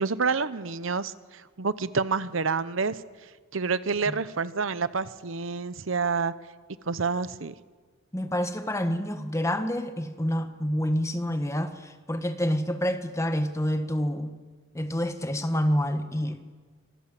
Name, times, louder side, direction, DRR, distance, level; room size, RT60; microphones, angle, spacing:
voice 1, 0.0-6.3 6.9-7.5, right 4 dB, 70° right, 15 dB, 0.9 m, -28 dB
voice 2, 8.1-14.3 14.7-16.4, equal, 15° left, 8 dB, 1.4 m, -28 dB
26.5 x 23.5 x 7.7 m, 1.4 s
head